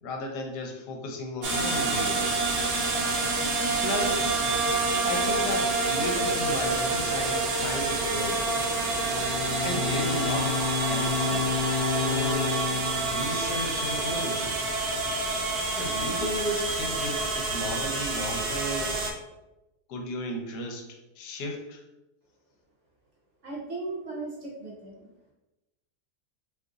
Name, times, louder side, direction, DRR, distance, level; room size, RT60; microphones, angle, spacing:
voice 1, 0.0-2.7 3.8-4.4 5.1-8.5 9.6-10.6 10.9-12.5 13.0-14.6 15.7-19.0 19.9-20.9 21.2-21.8, left 1 dB, 80° left, 2 dB, 1.2 m, -34 dB
sound 1, 1.4-19.1, right 3 dB, 85° right, 0.5 m, -28 dB
Bowed string instrument, 8.7-14.1, left 6 dB, 25° left, 0.7 m, -31 dB
voice 2, 23.4-24.9, right 3 dB, 60° right, -3 dB, 0.8 m, -36 dB
2.8 x 2.5 x 3.6 m, 0.99 s
omnidirectional pair, 1.7 m